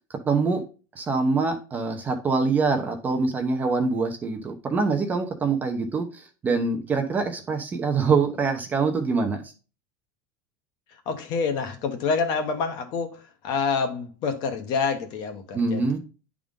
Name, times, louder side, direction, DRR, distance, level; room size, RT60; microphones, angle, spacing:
voice 1, 0.2-0.6 1.0-9.5 15.5-16.0, right 4 dB, 15° right, 0.7 m, -24 dB
voice 2, 11.1-16.0, left 5 dB, 40° left, 1.1 m, -27 dB
9.9 x 3.7 x 3.6 m
supercardioid pair, 165°, 10 cm